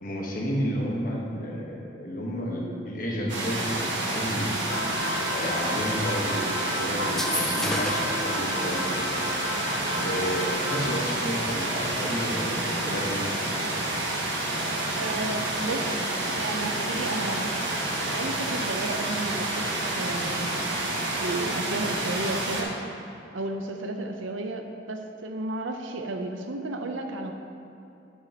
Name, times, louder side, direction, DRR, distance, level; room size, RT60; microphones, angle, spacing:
voice 1, 0.0-4.5 5.3-8.9 10.0-13.4, equal, 45° left, -2 dB, 1.3 m, -31 dB
sound 1, 3.3-22.6, right 2 dB, 70° right, 1.4 m, -29 dB
sound 2, 4.7-10.9, left 2 dB, 75° left, 1.1 m, -33 dB
sound 3, 7.1-8.2, left 1 dB, ahead, 0.3 m, -31 dB
voice 2, 14.9-16.0 16.3-17.6 18.0-20.5 21.1-22.8 23.3-27.3, right 2 dB, 85° right, 5 dB, 0.7 m, -33 dB
8.9 x 8.2 x 2.9 m, 2.8 s
head